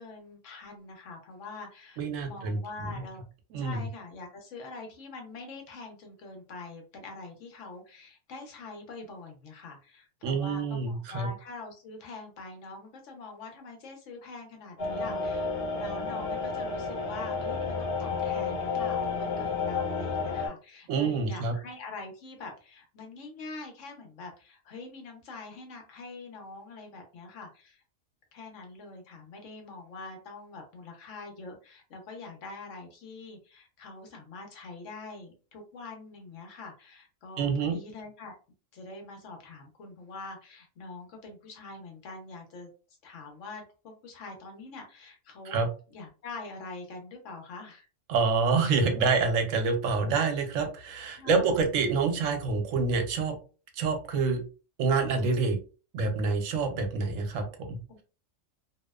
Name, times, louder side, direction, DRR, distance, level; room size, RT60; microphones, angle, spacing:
voice 1, 0.0-3.2 3.6-27.8 28.3-38.3 38.7-42.7 43.0-45.6 45.9-47.9 51.2-51.6 57.9-58.0, left 3 dB, 75° left, 3 dB, 1.1 m, -44 dB
voice 2, 2.0-2.6 2.9-3.0 3.5-3.8 10.2-11.3 20.9-21.5 37.4-37.8 45.5-45.7 48.1-53.4 53.8-54.4 54.8-55.6 55.9-57.8, right 4 dB, 90° right, 5 dB, 1.0 m, -27 dB
sound 1, 14.8-20.5, left 4 dB, 55° left, 1.0 m, -31 dB
2.7 x 2.1 x 2.2 m, 0.35 s
omnidirectional pair, 1.3 m